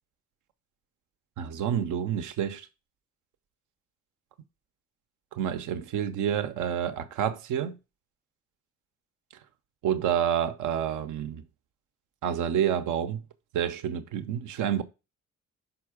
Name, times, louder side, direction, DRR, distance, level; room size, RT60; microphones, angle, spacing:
voice 1, 1.4-2.7 5.3-7.8 9.8-11.4 12.2-13.2 13.5-14.8, right 9 dB, 85° right, 0.8 m, -28 dB
5.9 x 4.8 x 4.9 m
cardioid pair, 90°, 30 cm